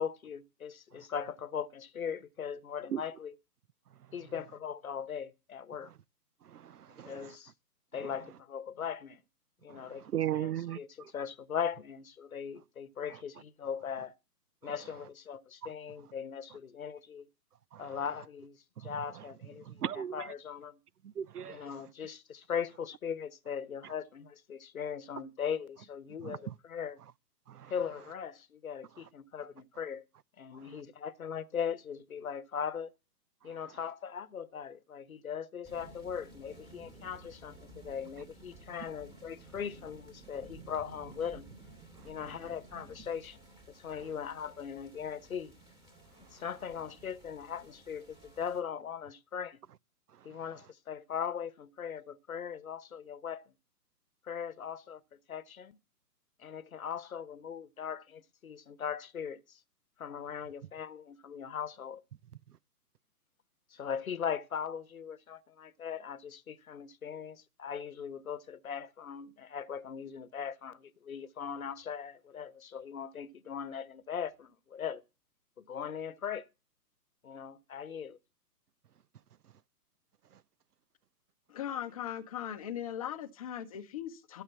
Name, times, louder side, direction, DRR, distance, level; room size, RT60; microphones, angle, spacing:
voice 1, 0.0-3.3 4.1-5.9 7.0-7.5 7.9-9.2 9.6-10.0 10.3-10.5 10.8-10.9 11.1-14.1 14.6-17.3 17.8-20.8 21.4-27.0 27.7-30.0 30.4-32.9 33.4-41.5 42.0-43.4 43.7-45.5 46.2-49.6 50.2-53.5 54.3-55.8 56.4-59.6 60.0-62.0 63.7-75.0 75.6-76.5 77.2-78.2, left 7 dB, 55° left, 1.0 m, -39 dB
voice 2, 6.4-7.4 8.0-8.1 9.7-11.1 14.6-14.7 15.6-15.7 17.7-17.9 18.8-19.2 19.6-20.3 21.0-21.7 23.8-23.9 26.2-26.5 27.5-27.7 30.5-30.7 33.4-33.5 42.0-42.1 50.2-50.3, right 11 dB, 70° right, 0.6 m, -38 dB
sound 1, 35.6-48.6, right 2 dB, 10° right, 2.7 m, -54 dB
voice 3, 81.5-84.4, left 10 dB, 20° left, 0.8 m, -39 dB
13.0 x 6.6 x 7.1 m
figure-of-eight pair, 130°, 49 cm